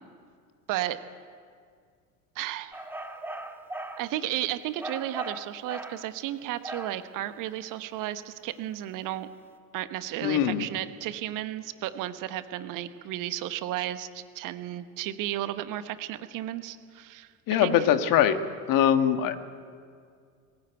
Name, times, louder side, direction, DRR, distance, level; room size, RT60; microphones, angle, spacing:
voice 1, 0.7-1.0 2.3-2.8 4.0-9.3 9.7-17.3 17.6-17.7, right 13 dB, 45° right, 12 dB, 1.2 m, -33 dB
sound 1, 2.7-4.1 4.8-6.0 6.6-7.0, right 1 dB, 5° right, 1.5 m, -38 dB
voice 2, 10.2-10.6 17.5-18.4 18.7-19.4, left 10 dB, 45° left, 10 dB, 1.5 m, -22 dB
21.0 x 15.0 x 9.1 m, 2.2 s
figure-of-eight pair, 70°, 45 cm